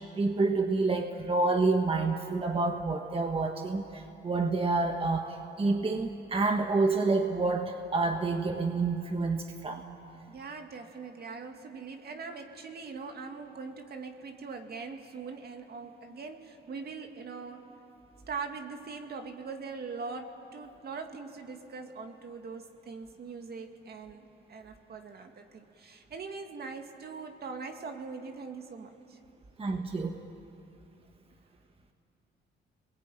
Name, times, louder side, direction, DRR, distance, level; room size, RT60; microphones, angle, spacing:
voice 1, 0.1-9.8 29.6-30.2, right 3 dB, 30° right, 5 dB, 1.5 m, -28 dB
voice 2, 10.3-17.6 18.3-29.2, right 4 dB, 50° right, 5 dB, 2.4 m, -42 dB
30.0 x 21.5 x 9.1 m, 2.8 s
cardioid pair, 90°, 20 cm